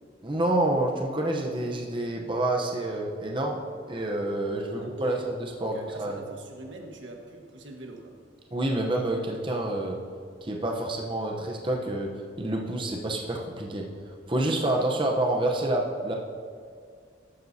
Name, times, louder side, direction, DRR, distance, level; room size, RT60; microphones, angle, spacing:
voice 1, 0.2-3.6 3.9-6.1 8.5-10.0 10.4-12.1 12.4-16.1, right 1 dB, 25° right, 0 dB, 0.8 m, -28 dB
voice 2, 4.7-5.3 5.7-8.1, right 2 dB, 80° right, 2 dB, 1.4 m, -44 dB
14.0 x 12.0 x 2.8 m, 2.1 s
head